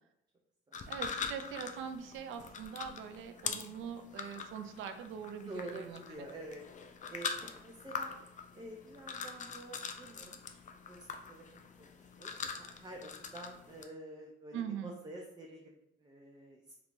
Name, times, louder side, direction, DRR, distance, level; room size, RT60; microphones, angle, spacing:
sound 1, 0.7-13.8, left 5 dB, 40° left, 0.4 m, -43 dB
voice 1, 0.9-6.2 14.5-15.0, right 8 dB, 80° right, 7 dB, 0.4 m, -43 dB
voice 2, 5.5-6.6 7.1-8.2 8.5-16.8, right 1 dB, 20° right, 0 dB, 0.4 m, -49 dB
3.5 x 2.9 x 2.5 m, 0.87 s
cardioid pair, 90°, 20 cm